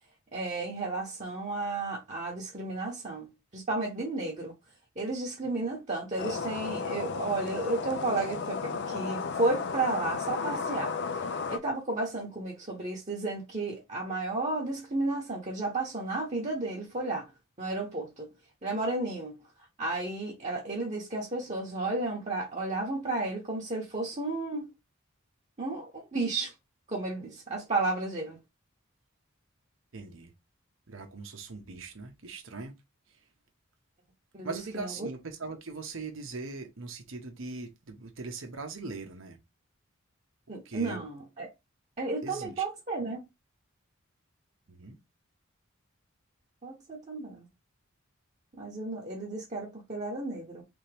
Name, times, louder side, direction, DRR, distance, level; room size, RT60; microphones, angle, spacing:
voice 1, 0.3-4.5 5.0-11.2 11.5-17.3 17.6-18.3 18.6-19.4 19.8-24.7 25.6-26.5 26.9-28.4 34.3-35.1 40.5-41.5 42.0-43.2 46.6-47.5 48.6-50.6, right 2 dB, 35° right, 1.0 m, -33 dB
sound 1, 6.2-11.6, left 5 dB, 55° left, 0.5 m, -34 dB
voice 2, 29.9-30.3 30.9-32.7 34.4-39.4 40.6-41.0 42.2-42.6 44.7-45.0, right 3 dB, 65° right, 0.9 m, -40 dB
3.5 x 2.9 x 3.3 m
head